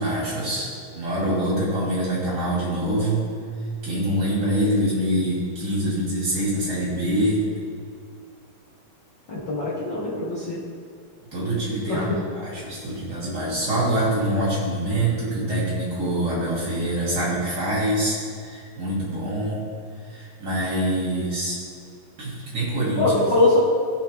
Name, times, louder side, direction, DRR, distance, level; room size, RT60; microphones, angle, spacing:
voice 1, 0.0-3.2 3.8-7.4 11.3-19.6 20.0-21.6 22.2-23.1, right 1 dB, 30° right, -6 dB, 2.8 m, -25 dB
voice 2, 9.3-10.6 11.9-12.1 23.0-23.6, left 2 dB, 55° left, -7 dB, 1.2 m, -22 dB
15.5 x 5.8 x 3.5 m, 2.2 s
omnidirectional pair, 3.9 m